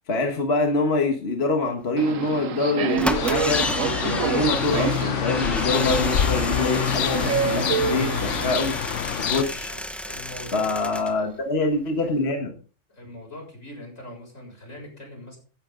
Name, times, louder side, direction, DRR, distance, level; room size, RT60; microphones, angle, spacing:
voice 1, 0.1-3.7 4.0-8.7 9.2-9.7 10.5-12.5, left 2 dB, 55° left, 4 dB, 1.7 m, -25 dB
Subway metro underground, 2.0-8.6, right 7 dB, 85° right, 1.3 m, -28 dB
sound 1, 2.3-2.4 2.9-11.2 11.5-11.6 11.8-11.9, equal, ahead, 0.8 m, -33 dB
sound 2, 3.1-9.4, left 9 dB, 70° left, 1.1 m, -26 dB
voice 2, 9.5-11.4 12.9-15.4, left 1 dB, 90° left, 1 dB, 7.2 m, -42 dB
16.0 x 11.0 x 3.8 m, 0.39 s
omnidirectional pair, 1.3 m